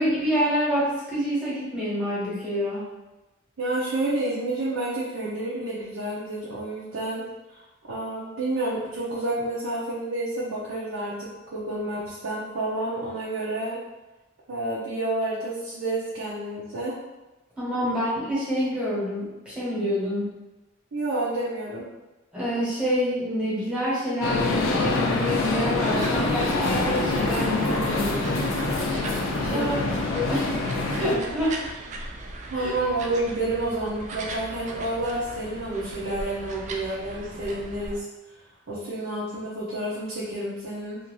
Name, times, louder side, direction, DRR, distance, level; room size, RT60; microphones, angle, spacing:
voice 1, 0.0-2.9 17.6-20.3 22.3-29.6 30.1-30.5 30.9-31.6 32.5-32.7, equal, 5° right, -9 dB, 1.1 m, -27 dB
voice 2, 3.6-7.3 7.5-7.6 7.9-13.8 14.5-16.9 17.8-18.1 20.9-21.9 29.5-29.9 32.5-38.0 38.7-41.0, right 2 dB, 70° right, -7 dB, 0.6 m, -29 dB
sound 1, 24.2-31.1, left 3 dB, 65° left, 0.4 m, -25 dB
sound 2, 25.8-38.0, right 2 dB, 35° right, 0.3 m, -38 dB
2.6 x 2.4 x 3.1 m, 1.1 s
head